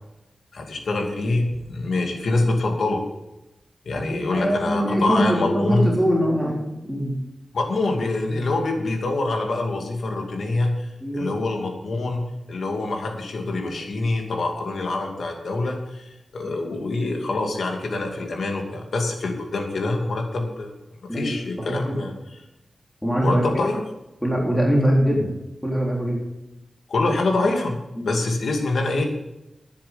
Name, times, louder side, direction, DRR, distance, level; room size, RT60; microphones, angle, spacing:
voice 1, 0.5-3.0 3.9-5.9 7.5-20.7 21.1-22.1 23.2-23.8 26.9-27.8 28.0-29.1, left 2 dB, 80° left, 2 dB, 2.4 m, -25 dB
voice 2, 4.1-7.2 8.3-8.5 11.0-11.3 21.1-21.3 21.6-22.0 23.0-23.4 24.2-25.3 25.6-26.2 28.0-28.1, equal, 5° left, -3 dB, 3.9 m, -22 dB
11.5 x 9.9 x 5.3 m, 0.94 s
wide cardioid pair, 75°, 0 cm